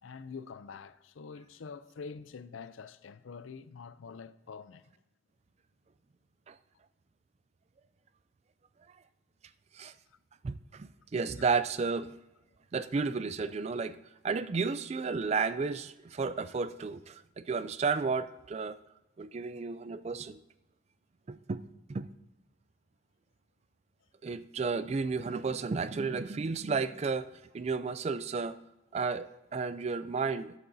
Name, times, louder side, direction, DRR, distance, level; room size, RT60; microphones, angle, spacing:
voice 1, 0.0-4.9 11.4-11.5, left 5 dB, 75° left, 0.5 m, -46 dB
voice 2, 10.4-12.2 12.7-14.0 14.2-18.8 19.2-20.4 21.3-21.6 21.9-22.1 24.2-27.3 27.5-28.6 28.9-30.5, right 4 dB, 30° right, 0.3 m, -32 dB
13.5 x 8.3 x 2.7 m
head